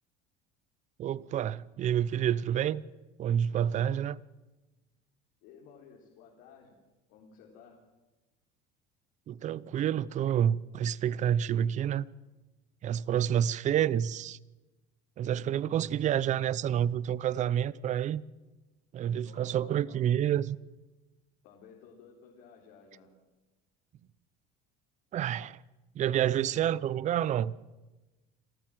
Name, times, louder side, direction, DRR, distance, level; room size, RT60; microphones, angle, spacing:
voice 1, 1.0-2.8 3.2-4.2 9.3-12.1 12.8-14.4 15.2-18.2 18.9-20.6 25.1-25.6 25.9-27.5, right 10 dB, 35° right, 0.7 m, -28 dB
voice 2, 5.4-6.8 7.1-7.8 19.1-20.1 21.4-23.1, left 6 dB, 75° left, 4.0 m, -55 dB
28.0 x 13.5 x 7.7 m
cardioid pair, 140°, 20 cm